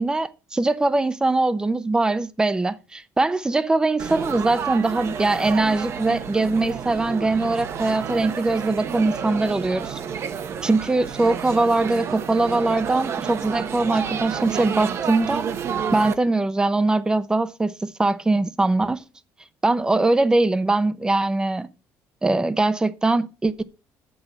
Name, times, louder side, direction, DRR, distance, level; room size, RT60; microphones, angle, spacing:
voice 1, 0.0-10.0 10.6-15.5 15.9-19.0 19.6-21.7 22.2-23.6, right 2 dB, 15° right, 0.7 m, -22 dB
Laughter / Chatter / Crowd, 4.0-16.1, right 7 dB, 50° right, 0.8 m, -30 dB
7.6 x 6.3 x 6.5 m
cardioid pair, 125°, 6 cm